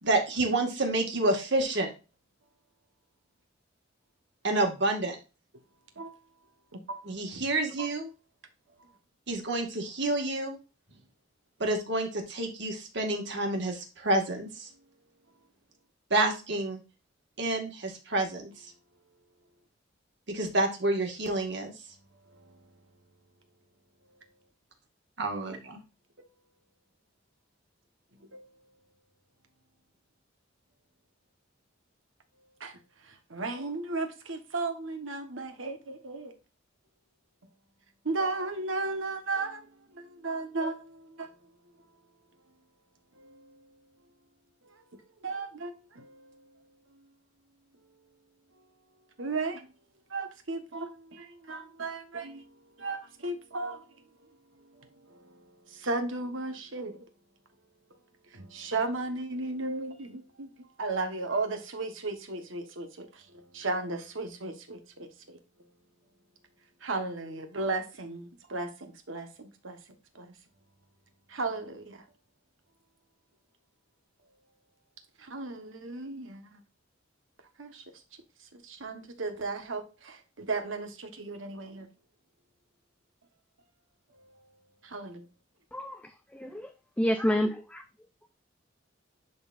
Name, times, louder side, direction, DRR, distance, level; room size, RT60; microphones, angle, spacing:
voice 1, 0.0-1.9 4.4-5.2 7.0-8.1 9.3-10.6 11.6-14.7 16.1-16.8 17.4-18.7 20.3-21.7 25.2-25.8, right 2 dB, 65° right, 1.8 m, -29 dB
voice 2, 6.7-7.1 7.8-7.9 28.3-28.4 32.6-32.7 33.0-36.3 38.0-41.3 43.2-43.6 44.6-44.8 45.2-46.4 49.2-49.7 50.1-52.5 52.8-53.8 54.8-55.4 55.7-57.0 58.3-60.5 60.8-63.2 63.5-65.4 66.8-69.8 70.1-70.3 71.3-72.0 75.2-76.6 77.6-77.8 78.6-81.9 84.8-85.2, right 3 dB, 90° right, 1.3 m, -35 dB
voice 3, 85.7-86.7 87.0-87.8, equal, 5° left, 0.5 m, -29 dB
11.0 x 4.0 x 2.5 m
head